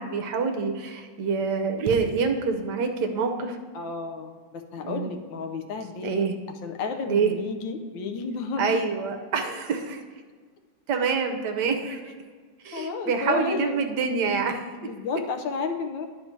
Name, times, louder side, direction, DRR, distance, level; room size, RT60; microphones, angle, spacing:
voice 1, 0.0-3.6 4.8-5.1 6.0-6.3 7.1-7.3 8.6-10.0 10.9-12.1 12.6-14.6, right 5 dB, 65° right, 5 dB, 1.3 m, -26 dB
sound 1, 1.8-2.8, right 6 dB, 85° right, 1.4 m, -37 dB
voice 2, 3.7-6.2 6.6-8.8 12.7-13.8 14.8-16.1, left 4 dB, 75° left, 5 dB, 1.4 m, -32 dB
10.5 x 4.3 x 4.4 m, 1.5 s
omnidirectional pair, 2.2 m